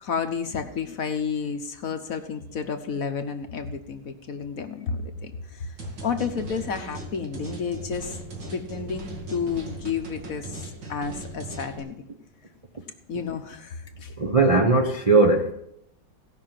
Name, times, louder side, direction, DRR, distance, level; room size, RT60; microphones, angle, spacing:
voice 1, 0.0-5.7 6.0-8.2 8.5-12.0 13.1-14.1, left 6 dB, 55° left, 1.3 m, -31 dB
sound 1, 5.8-11.8, right 2 dB, 75° right, 2.9 m, -38 dB
voice 2, 14.2-15.5, right 3 dB, 30° right, 0.7 m, -19 dB
17.0 x 5.9 x 7.5 m
omnidirectional pair, 1.9 m